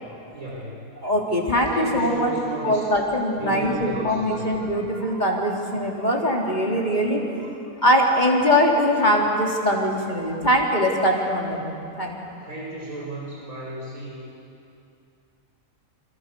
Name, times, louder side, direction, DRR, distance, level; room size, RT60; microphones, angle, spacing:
voice 1, 0.3-0.9 1.7-2.8 3.4-4.5 12.4-14.3, right 2 dB, 80° right, -4 dB, 5.9 m, -33 dB
voice 2, 1.0-2.3 2.6-7.2 7.8-12.2, equal, 30° left, -1 dB, 3.8 m, -22 dB
29.0 x 28.0 x 7.0 m, 2.6 s
omnidirectional pair, 1.4 m